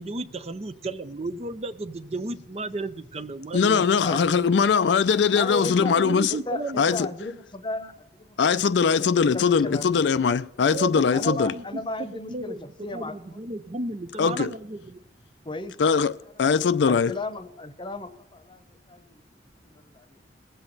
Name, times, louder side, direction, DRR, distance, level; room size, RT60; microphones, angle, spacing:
voice 1, 0.0-4.5 5.6-6.8 10.7-15.0, right 2 dB, 35° right, 0.5 m, -34 dB
voice 2, 3.5-6.3 6.8-7.1 8.4-11.5 14.2-14.5 15.8-17.1, left 6 dB, 70° left, 0.4 m, -21 dB
voice 3, 5.3-5.9 6.3-8.4 9.3-10.0 11.1-13.4 15.4-15.8 16.4-16.5 16.9-19.2 19.6-20.3, left 2 dB, 25° left, 0.9 m, -35 dB
20.5 x 7.9 x 4.0 m
head